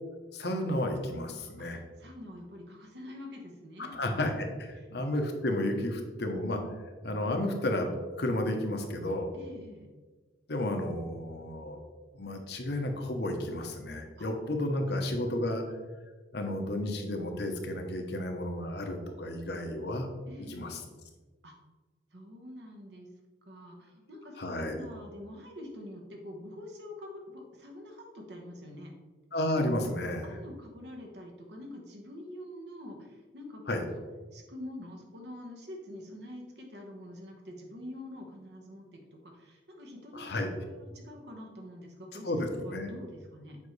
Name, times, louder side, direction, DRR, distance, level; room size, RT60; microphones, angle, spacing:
voice 1, 0.3-1.8 3.8-6.6 7.0-9.3 10.5-11.8 12.1-15.6 16.3-20.1 20.5-20.8 24.4-24.8 29.3-30.3 33.7-33.8 40.1-40.5 42.2-42.9, left 1 dB, 60° left, 4 dB, 1.0 m, -32 dB
voice 2, 2.0-3.9 4.7-4.9 9.3-9.9 14.2-14.3 20.3-20.9 21.4-21.5 22.1-23.1 23.4-24.3 24.6-28.9 30.2-33.6 33.9-34.0 34.3-40.3 40.6-43.6, left 1 dB, 60° right, 1 dB, 1.3 m, -46 dB
7.4 x 5.1 x 3.2 m, 1.3 s
head